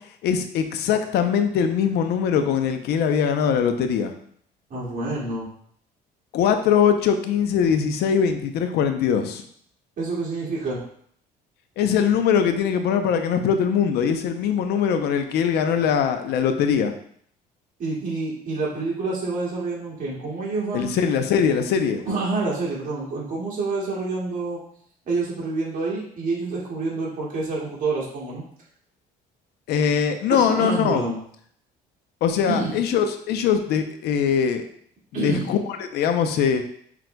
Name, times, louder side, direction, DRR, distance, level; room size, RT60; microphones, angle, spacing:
voice 1, 0.2-4.1 6.3-9.4 11.8-16.9 20.7-22.0 29.7-31.0 32.2-34.6 35.2-36.6, left 7 dB, 75° left, 7 dB, 0.6 m, -22 dB
voice 2, 4.7-5.5 10.0-10.8 17.8-20.9 22.1-24.6 25.1-28.4 30.3-31.2 32.5-32.7 35.1-35.5, right 3 dB, 50° right, -5 dB, 2.0 m, -27 dB
6.0 x 3.8 x 2.2 m, 0.63 s
cardioid pair, 110°, 17 cm